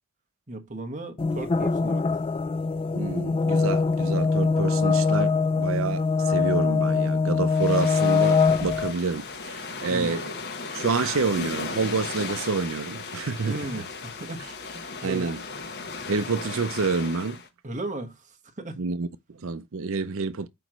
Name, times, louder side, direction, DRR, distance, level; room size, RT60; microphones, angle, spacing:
voice 1, 0.5-2.0 9.9-10.2 13.5-14.4 15.0-15.3 17.6-18.8, right 2 dB, 35° right, 1.2 m, -35 dB
sound 1, 1.2-8.9, left 4 dB, 25° left, 0.3 m, -23 dB
voice 2, 2.9-10.3 10.7-13.8 15.0-15.4 16.1-17.4 18.8-20.5, right 4 dB, 65° right, 0.6 m, -28 dB
sound 2, 7.5-17.5, left 4 dB, 50° left, 1.1 m, -36 dB
8.3 x 3.1 x 6.1 m
head